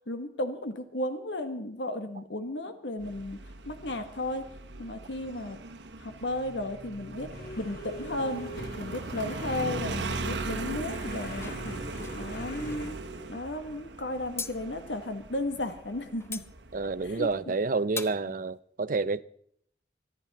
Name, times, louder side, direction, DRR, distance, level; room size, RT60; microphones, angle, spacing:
voice 1, 0.1-4.4 4.8-5.6 6.0-7.3 7.6-11.8 12.1-13.0 13.3-16.4 17.0-17.5, left 1 dB, 80° left, 1.4 m, -34 dB
Motorcycle, 3.0-17.3, right 3 dB, 80° right, 1.2 m, -39 dB
sound 1, 7.3-12.9, left 1 dB, 55° left, 2.5 m, -43 dB
sound 2, 11.3-12.8 14.4-14.5 16.2-16.5 17.3-17.5 18.0-18.2, left 4 dB, 15° left, 0.7 m, -40 dB
voice 2, 16.7-19.2, right 3 dB, 50° right, 0.5 m, -29 dB
25.0 x 9.8 x 4.1 m
head